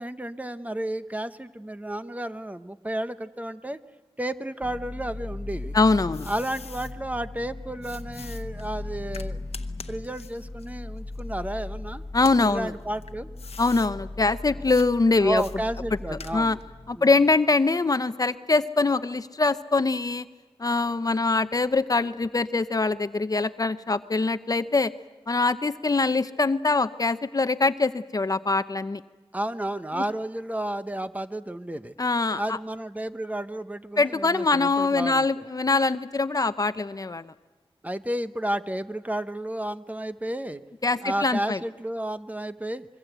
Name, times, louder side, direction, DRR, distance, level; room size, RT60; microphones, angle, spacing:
voice 1, 0.0-3.8 4.2-5.8 6.3-9.4 9.9-12.0 12.4-13.3 15.2-16.6 16.9-17.2 29.3-31.9 32.3-35.3 37.8-40.6 41.0-42.9, right 1 dB, 15° right, 11 dB, 0.9 m, -32 dB
sound 1, 4.6-17.0, left 2 dB, 20° left, 1.3 m, -38 dB
sound 2, 5.5-6.9 7.8-11.7 12.1-13.9 14.7-14.9 15.4-16.7, left 5 dB, 80° left, 1.1 m, -45 dB
voice 2, 5.7-6.3 12.1-12.7 13.6-15.4 16.3-16.6 16.9-20.3 20.6-24.9 25.3-29.0 32.0-32.6 34.0-37.3 40.8-41.6, left 3 dB, 35° left, 12 dB, 0.7 m, -23 dB
25.5 x 23.0 x 8.0 m, 1.2 s
wide cardioid pair, 85°, 10 cm